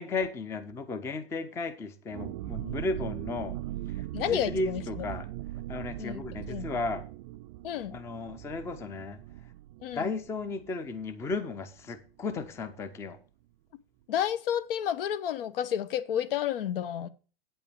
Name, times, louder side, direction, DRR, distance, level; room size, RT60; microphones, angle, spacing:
voice 1, 0.0-3.6 4.3-5.3 5.7-7.0 7.9-9.2 10.0-13.2, left 3 dB, 10° left, 0.5 m, -34 dB
sound 1, 2.1-11.5 11.8-11.9 12.2-12.5, right 15 dB, 40° right, 0.4 m, -40 dB
voice 2, 4.1-5.1 6.0-6.7 7.6-8.0 9.8-10.1 14.1-17.1, left 10 dB, 70° left, 1.0 m, -31 dB
8.8 x 5.5 x 6.9 m
supercardioid pair, 155°, 30 cm